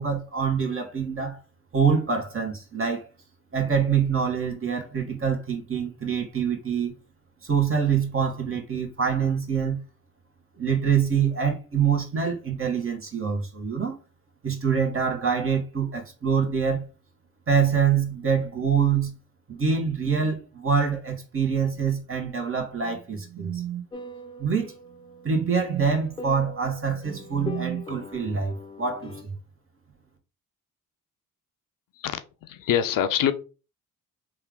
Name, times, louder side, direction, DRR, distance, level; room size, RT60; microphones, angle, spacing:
voice 1, 0.0-1.4 1.7-3.1 3.5-6.9 7.4-9.8 10.6-13.9 14.4-16.8 17.5-19.1 19.5-23.8 24.4-24.7 25.2-29.4, right 6 dB, 35° right, 1.3 m, -25 dB
sound 1, 23.9-29.2, left 2 dB, 15° left, 0.7 m, -41 dB
voice 2, 32.0-33.3, left 9 dB, 65° left, 0.6 m, -25 dB
3.4 x 2.4 x 3.5 m
supercardioid pair, 55°, 35 cm